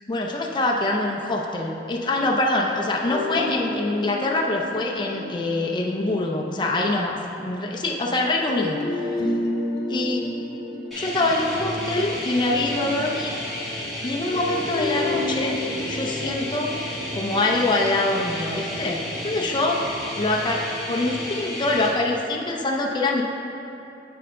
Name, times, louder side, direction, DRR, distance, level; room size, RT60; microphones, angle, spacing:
voice 1, 0.1-9.3 9.9-10.4 10.9-13.4 14.0-15.6 15.9-16.8 17.1-19.8 20.1-23.2, left 2 dB, 25° left, -1 dB, 0.5 m, -24 dB
sound 1, 3.1-6.9 8.5-12.9 14.4-19.5, left 2 dB, 60° left, 1.1 m, -32 dB
sound 2, 10.9-21.9, left 1 dB, ahead, 1.4 m, -32 dB
7.2 x 4.5 x 5.4 m, 2.8 s
head